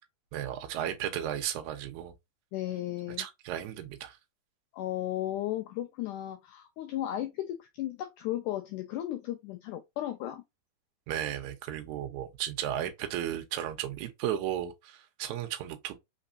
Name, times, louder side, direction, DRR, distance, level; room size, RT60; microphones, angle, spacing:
voice 1, 0.3-2.1 3.2-4.2 11.1-15.9, right 11 dB, 75° right, 1.8 m, -34 dB
voice 2, 2.5-3.2 4.7-10.4, left 13 dB, 85° left, 1.8 m, -35 dB
5.3 x 3.5 x 2.6 m
omnidirectional pair, 4.3 m